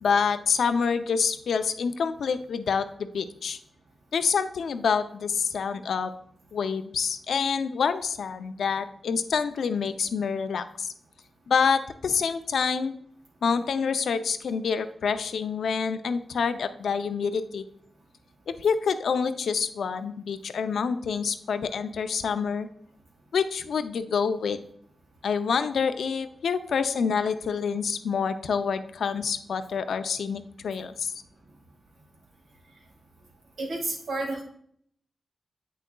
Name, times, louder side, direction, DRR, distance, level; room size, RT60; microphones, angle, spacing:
voice 1, 0.0-3.6 4.1-6.1 6.5-10.9 11.5-12.9 13.4-17.6 18.6-22.7 23.3-24.6 25.2-31.1, left 6 dB, 80° left, 10 dB, 0.4 m, -27 dB
voice 2, 33.6-34.4, right 2 dB, 90° right, -2 dB, 1.9 m, -30 dB
8.1 x 6.2 x 2.2 m, 0.66 s
cardioid pair, 65°, 0 cm